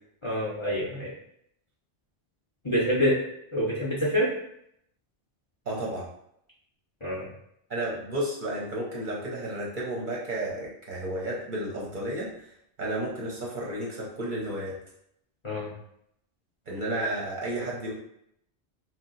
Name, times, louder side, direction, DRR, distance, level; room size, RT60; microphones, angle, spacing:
voice 1, 0.2-1.1 2.6-3.2 3.5-4.3 7.0-7.3 15.4-15.7, equal, 35° left, -6 dB, 0.6 m, -26 dB
voice 2, 5.7-6.1 7.7-12.5 12.8-14.8 16.7-17.9, right 1 dB, 50° right, -3 dB, 0.8 m, -32 dB
2.7 x 2.1 x 3.8 m, 0.74 s
omnidirectional pair, 1.1 m